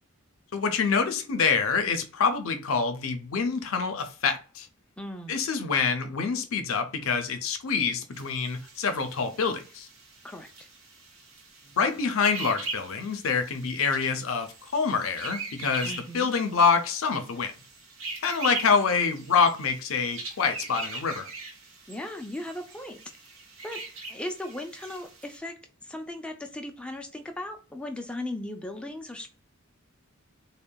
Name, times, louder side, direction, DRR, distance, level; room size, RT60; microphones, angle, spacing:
voice 1, 0.5-4.7 5.3-9.9 11.7-17.5 18.2-21.3, left 5 dB, 75° left, 0.5 m, -26 dB
voice 2, 5.0-5.4 10.2-10.5 15.8-16.3 21.9-23.0 23.6-23.8 24.1-25.6 25.8-29.3, left 1 dB, 5° left, 0.4 m, -37 dB
sound 1, 8.1-25.4, right 3 dB, 80° right, 0.9 m, -42 dB
3.6 x 2.1 x 2.2 m
head